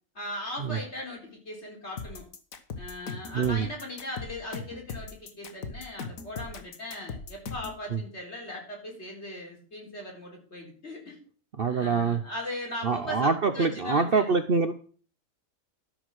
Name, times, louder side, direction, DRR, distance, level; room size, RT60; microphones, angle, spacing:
voice 1, 0.1-2.3 2.7-11.2 11.7-14.3, left 1 dB, 50° left, -1 dB, 4.2 m, -39 dB
sound 1, 2.0-7.8, left 4 dB, 70° left, 1.6 m, -39 dB
voice 2, 3.3-3.7 7.9-8.0 11.6-12.2 12.8-14.7, right 5 dB, 50° right, 9 dB, 0.8 m, -25 dB
12.0 x 6.1 x 6.3 m, 0.42 s
omnidirectional pair, 1.5 m